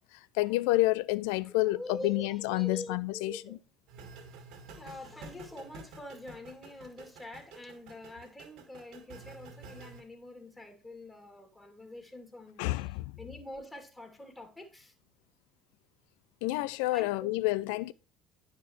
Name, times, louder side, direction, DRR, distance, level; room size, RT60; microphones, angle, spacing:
voice 1, 0.3-3.4 12.6-13.1 16.4-17.9, left 19 dB, 75° left, 0.4 m, -29 dB
voice 2, 1.4-3.6 4.7-14.9 16.9-17.4, left 1 dB, 15° left, 2.5 m, -45 dB
sound 1, 3.9-10.0, right 3 dB, 65° right, 1.8 m, -50 dB
9.5 x 5.5 x 3.1 m
hypercardioid pair, 60°, 0 cm